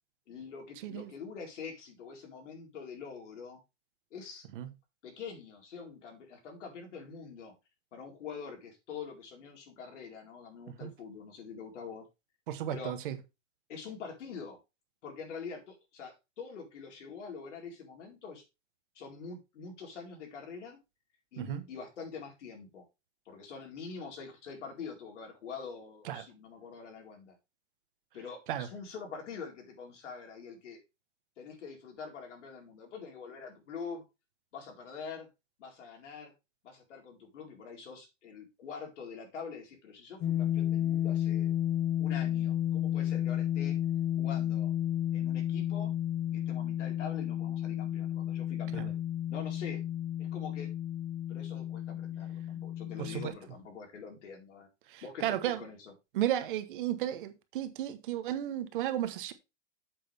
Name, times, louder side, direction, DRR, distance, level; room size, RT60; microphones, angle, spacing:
voice 1, 0.3-3.6 4.1-4.5 5.0-7.5 7.9-12.0 12.7-12.9 13.7-14.6 15.0-18.4 18.9-20.8 21.3-22.8 23.3-27.3 28.1-30.8 31.4-34.1 34.5-35.3 35.6-36.3 36.6-41.5 42.0-43.8 44.2-44.7 45.1-45.9 46.3-49.0 49.3-49.8 50.2-50.7 51.3-54.7 55.0-55.9, left 5 dB, 75° left, 4.5 m, -45 dB
voice 2, 12.5-13.2 21.4-21.6 26.0-26.2 28.5-28.7 48.7-48.9 53.0-53.3 54.9-55.6 56.1-59.3, right 12 dB, 45° right, 1.2 m, -34 dB
sound 1, 40.2-53.3, left 11 dB, 15° left, 0.5 m, -32 dB
8.5 x 7.7 x 3.5 m
supercardioid pair, 170°, 37 cm